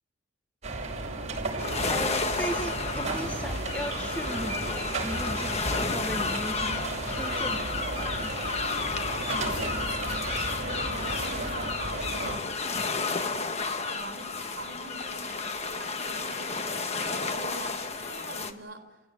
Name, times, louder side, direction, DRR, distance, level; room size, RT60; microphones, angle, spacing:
sound 1, 0.6-12.4, right 2 dB, 35° right, 5.9 m, -34 dB
sound 2, 1.6-18.5, left 4 dB, 30° left, 1.3 m, -32 dB
voice 1, 1.9-8.4, right 1 dB, 5° left, 5 dB, 1.2 m, -37 dB
voice 2, 9.5-12.6 13.3-19.0, right 2 dB, 55° right, 5 dB, 3.9 m, -45 dB
30.0 x 16.0 x 9.5 m, 1.2 s
head